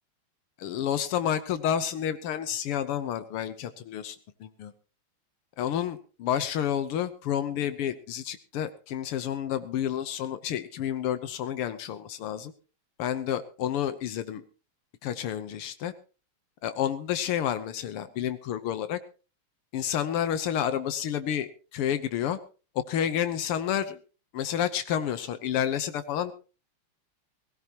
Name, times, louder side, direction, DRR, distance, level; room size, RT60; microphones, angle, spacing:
voice 1, 0.6-4.1 4.6-4.7 5.6-12.5 13.0-14.4 15.0-15.9 16.6-19.0 19.7-22.4 22.8-24.0 24.3-26.3, left 10 dB, 90° left, 11 dB, 1.9 m, -30 dB
19.0 x 17.5 x 2.9 m, 0.35 s
omnidirectional pair, 2.4 m